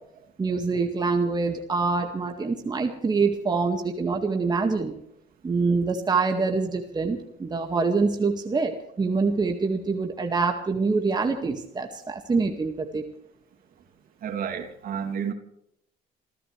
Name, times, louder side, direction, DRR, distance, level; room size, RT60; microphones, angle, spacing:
voice 1, 0.4-4.9 5.4-13.0, right 4 dB, 25° right, 3 dB, 2.0 m, -25 dB
voice 2, 14.2-15.3, right 7 dB, 60° right, 5 dB, 3.0 m, -30 dB
27.0 x 15.5 x 3.4 m, 0.73 s
cardioid pair, 110°, 17 cm